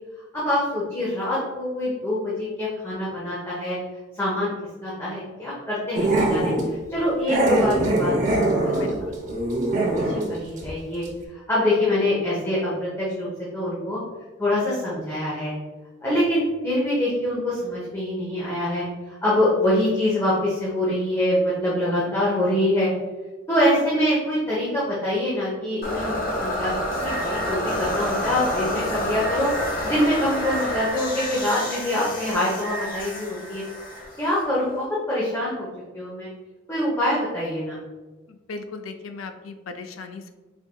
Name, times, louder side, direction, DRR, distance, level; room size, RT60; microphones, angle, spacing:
voice 1, 0.3-3.8 4.2-4.5 4.8-8.9 9.7-11.0 11.5-13.3 13.5-14.0 14.4-15.5 16.0-22.9 23.5-29.5 29.8-33.6 34.2-35.7 35.9-36.3 36.7-37.8, left 1 dB, 15° left, -8 dB, 0.8 m, -25 dB
Growling, 5.9-6.7 7.3-10.3 10.6-10.7 11.0-11.1, right 1 dB, 40° right, 0.7 m, -22 dB
voice 2, 8.6-9.1 38.3-40.3, left 4 dB, 90° left, 7 dB, 0.4 m, -37 dB
sound 1, 25.8-34.8, equal, 45° left, 0.8 m, -28 dB
4.4 x 3.6 x 2.2 m, 1.2 s
head